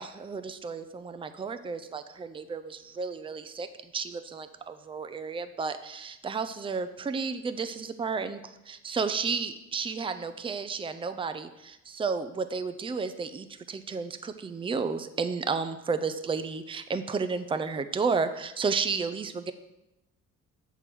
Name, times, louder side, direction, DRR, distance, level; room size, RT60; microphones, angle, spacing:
voice 1, 0.0-3.7 3.9-19.5, right 5 dB, 20° right, 10 dB, 0.4 m, -32 dB
7.4 x 3.4 x 6.0 m, 0.92 s
cardioid pair, 90°, 30 cm